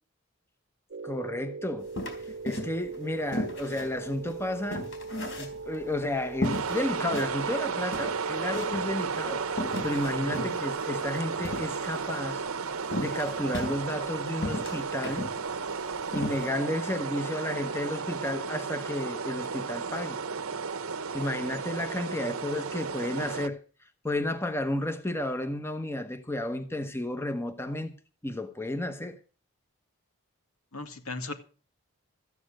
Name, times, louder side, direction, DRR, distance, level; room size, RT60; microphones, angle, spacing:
sound 1, 0.9-11.4, right 4 dB, 55° right, 0.7 m, -41 dB
voice 1, 1.0-1.9 2.4-4.9 5.4-12.4 13.0-15.3 16.1-20.2 21.1-23.6 24.0-27.9 28.2-29.2, left 1 dB, 10° left, 1.0 m, -32 dB
sound 2, 1.9-3.0 3.3-5.9 6.4-7.3 7.6-7.7 7.9-8.9 9.5-12.1 12.9-14.1 14.4-15.4 15.7-15.8 16.1-16.4, left 1 dB, 60° left, 3.8 m, -35 dB
sound 3, 6.4-23.5, right 5 dB, 80° right, 1.0 m, -33 dB
voice 2, 10.2-10.5 22.1-22.4 30.7-31.3, left 2 dB, 85° left, 2.2 m, -38 dB
14.0 x 9.6 x 6.4 m
head